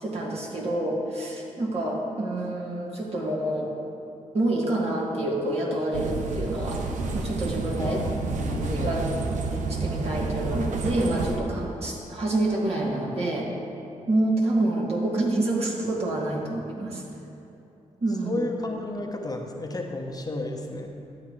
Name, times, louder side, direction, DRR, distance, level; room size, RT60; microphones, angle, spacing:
voice 1, 0.0-3.7 4.3-6.8 7.1-8.0 8.9-9.1 9.7-13.5 14.1-17.0 18.0-18.5, right 2 dB, 55° right, -4 dB, 2.0 m, -27 dB
sound 1, 5.9-11.4, right 3 dB, 75° right, 0.7 m, -29 dB
voice 2, 7.8-8.1 8.4-8.9 18.2-20.9, left 2 dB, 30° left, 2 dB, 0.9 m, -32 dB
12.0 x 8.4 x 3.2 m, 2.9 s
cardioid pair, 60°, 13 cm